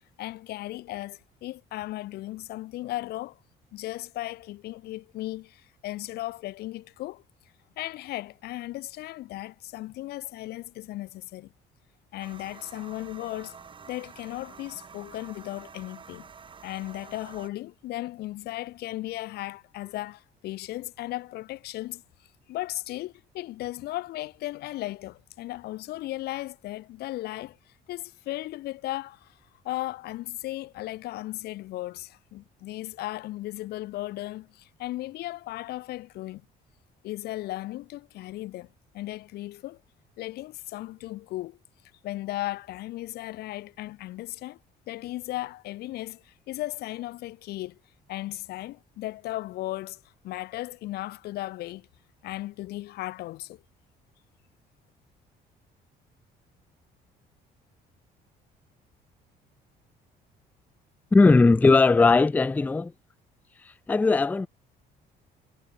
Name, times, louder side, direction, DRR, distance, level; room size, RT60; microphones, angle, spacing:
voice 1, 0.2-3.4 3.7-7.2 7.8-11.5 12.1-13.6 13.9-16.3 16.6-22.0 22.5-29.4 29.6-36.4 37.0-39.8 40.2-41.6 42.0-44.6 44.9-47.8 48.1-51.9 52.2-53.6, left 16 dB, 70° left, 0.6 m, -36 dB
sound 1, 12.2-17.5, right 6 dB, 30° right, 1.1 m, -48 dB
voice 2, 61.1-62.9 63.9-64.5, left 3 dB, 10° left, 0.4 m, -18 dB
cardioid pair, 110°, 17 cm